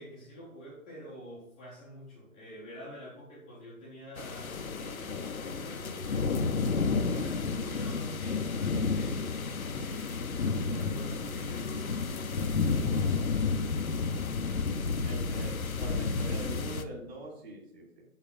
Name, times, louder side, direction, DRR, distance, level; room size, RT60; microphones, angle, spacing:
voice 1, 0.0-6.4 7.0-9.3 9.8-13.8, equal, 5° left, -6 dB, 0.7 m, -47 dB
sound 1, 4.2-16.8, left 4 dB, 70° left, 0.8 m, -31 dB
voice 2, 15.0-18.0, right 2 dB, 45° right, -2 dB, 3.1 m, -43 dB
6.4 x 5.7 x 5.3 m, 0.73 s
figure-of-eight pair, 140°, 44 cm